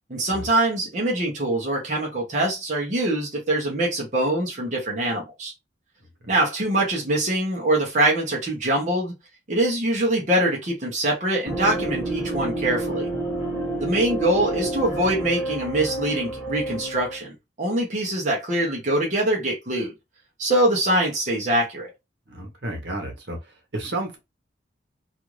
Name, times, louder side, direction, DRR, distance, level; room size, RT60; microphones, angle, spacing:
voice 1, 0.1-5.5 6.3-9.1 9.5-13.1 13.8-17.3 17.6-19.9 20.4-21.9, right 1 dB, 40° right, 0.7 m, -23 dB
sound 1, 11.5-17.2, right 2 dB, 5° right, 1.2 m, -29 dB
voice 2, 22.3-23.4 23.7-24.2, right 1 dB, 70° right, 1.0 m, -31 dB
2.5 x 2.4 x 3.0 m
head